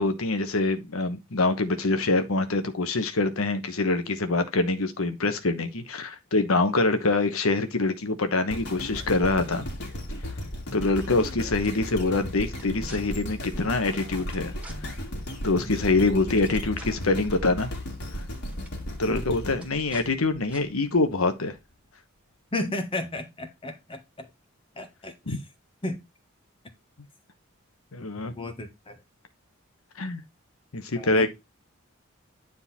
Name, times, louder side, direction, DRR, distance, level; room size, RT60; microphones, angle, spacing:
voice 1, 0.0-9.7 10.7-14.5 14.8-15.0 15.4-17.7 19.0-21.6 25.3-25.4 27.9-28.3 30.0-30.2 30.7-31.3, left 3 dB, 80° left, 1.1 m, -25 dB
sound 1, 8.5-20.7 21.2-21.3, left 1 dB, 55° left, 2.5 m, -35 dB
sound 2, 10.9-11.2 11.6-11.7 12.5-13.0 14.3-14.8 15.8-16.0 16.2-17.1 18.0-18.2 18.5-18.7 19.6-20.1 20.5-20.6, right 1 dB, 5° right, 1.7 m, -48 dB
voice 2, 22.5-24.3 24.8-25.4 25.8-26.0 28.2-29.0 31.0-31.3, left 2 dB, 25° left, 1.3 m, -34 dB
9.7 x 4.0 x 4.2 m
head